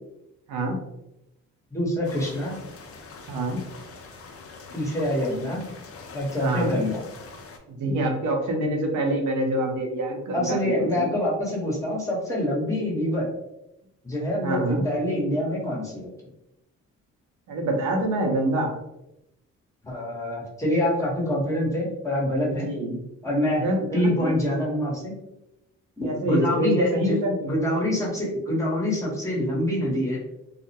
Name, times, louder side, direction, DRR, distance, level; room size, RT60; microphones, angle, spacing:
voice 1, 1.7-2.6 4.7-5.6 6.1-7.0 7.9-8.0 10.3-13.3 14.0-16.1 19.8-22.7 23.2-25.1 26.0-27.2 27.5-30.2, left 1 dB, 10° left, -5 dB, 0.9 m, -26 dB
sound 1, 2.0-7.6, left 4 dB, 50° left, 0.5 m, -44 dB
voice 2, 3.3-3.6 6.4-6.7 7.7-11.1 14.4-14.8 17.5-18.7 22.5-23.0 23.6-24.3 26.0-27.5, right 1 dB, 80° right, 2 dB, 0.7 m, -26 dB
2.4 x 2.1 x 2.8 m, 0.87 s
cardioid pair, 90°, 30 cm